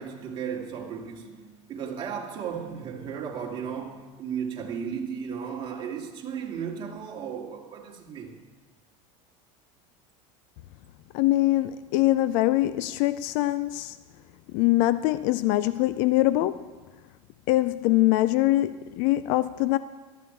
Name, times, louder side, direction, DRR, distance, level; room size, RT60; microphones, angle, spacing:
voice 1, 0.0-8.4, right 7 dB, 30° right, 2.5 m, -35 dB
voice 2, 11.1-14.0 14.5-16.6 17.5-19.8, left 16 dB, 60° left, 0.5 m, -23 dB
17.5 x 13.0 x 4.6 m
supercardioid pair, 140°, 15 cm